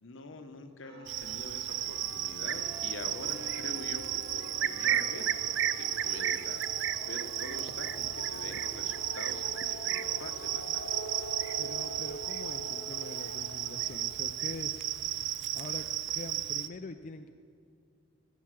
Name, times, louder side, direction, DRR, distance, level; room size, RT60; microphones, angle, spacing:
voice 1, 0.0-5.3 5.7-10.8, left 3 dB, 70° left, 8 dB, 0.9 m, -45 dB
sound 1, 0.8-12.3 12.8-13.0, equal, 80° right, 3.4 m, -52 dB
Cricket, 1.1-16.7, right 12 dB, 60° right, 0.4 m, -33 dB
sound 2, 4.0-15.8, equal, 90° left, 1.1 m, -45 dB
voice 2, 11.6-14.8 15.5-15.9 16.1-17.3, left 3 dB, 40° left, 7 dB, 0.4 m, -44 dB
13.0 x 7.0 x 7.5 m, 2.3 s
head